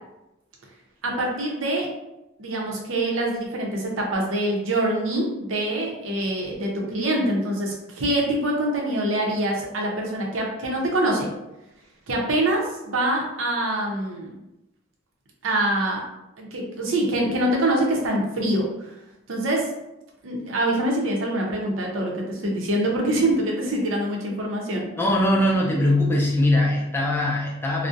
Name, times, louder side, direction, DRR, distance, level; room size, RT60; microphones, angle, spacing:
voice 1, 1.0-1.9 2.4-11.3 12.1-14.3 15.4-16.0 16.4-18.9 19.3-19.7 20.2-24.9, right 1 dB, 80° right, -1 dB, 0.6 m, -25 dB
voice 2, 25.0-27.9, left 1 dB, 10° left, -2 dB, 0.4 m, -21 dB
2.4 x 2.0 x 2.6 m, 0.92 s
head